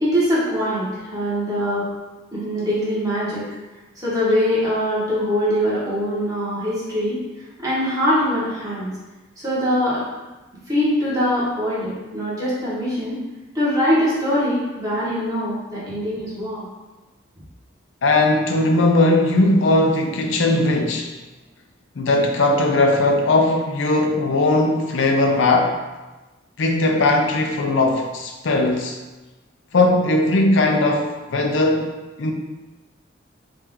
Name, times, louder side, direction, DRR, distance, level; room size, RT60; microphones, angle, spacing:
voice 1, 0.0-1.8 2.3-3.4 4.0-7.2 7.6-8.9 9.4-10.0 10.7-13.2 13.5-16.6, equal, 20° right, -9 dB, 1.4 m, -22 dB
voice 2, 18.0-21.1 22.0-25.8 26.6-29.0 29.7-31.9 32.2-32.3, left 2 dB, 80° left, 3 dB, 0.5 m, -18 dB
4.6 x 2.5 x 3.7 m, 1.1 s
head